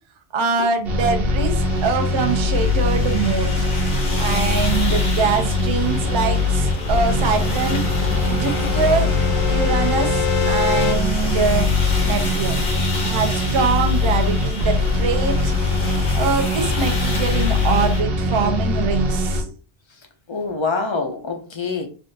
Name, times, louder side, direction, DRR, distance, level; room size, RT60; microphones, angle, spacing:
voice 1, 0.3-3.7 4.2-7.8 8.3-9.1 9.5-11.7 12.0-12.7 13.0-15.5 16.2-19.4, right 5 dB, 40° right, 0.4 m, -23 dB
sound 1, 0.8-19.4, left 2 dB, 70° right, 1.0 m, -21 dB
sound 2, 1.6-18.0, left 3 dB, 55° left, 0.9 m, -31 dB
voice 2, 4.1-4.5 4.9-5.0 19.4-19.5 20.3-21.9, left 4 dB, 40° left, 0.4 m, -26 dB
sound 3, 6.0-10.9, left 8 dB, 80° left, 1.0 m, -28 dB
3.4 x 2.5 x 2.7 m
omnidirectional pair, 1.1 m